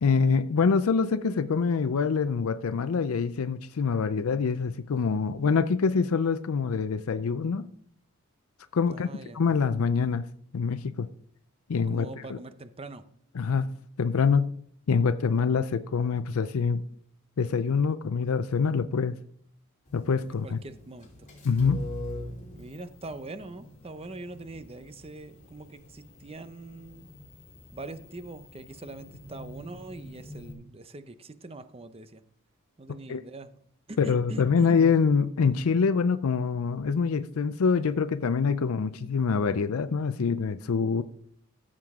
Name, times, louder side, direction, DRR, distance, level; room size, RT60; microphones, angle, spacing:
voice 1, 0.0-7.7 8.7-9.1 9.3-10.3 10.5-11.1 11.7-12.4 13.3-13.7 14.0-14.5 14.9-16.8 17.4-19.2 19.9-20.6 21.4-21.8 33.1-33.2 34.0-41.0, left 5 dB, 85° left, 0.5 m, -25 dB
voice 2, 8.9-9.4 11.9-13.0 20.4-21.3 22.5-27.1 27.7-32.2 32.8-33.6 33.9-34.8, right 2 dB, 25° right, 0.6 m, -43 dB
sound 1, 19.9-30.5, left 1 dB, 35° left, 2.9 m, -44 dB
14.0 x 7.5 x 3.6 m
head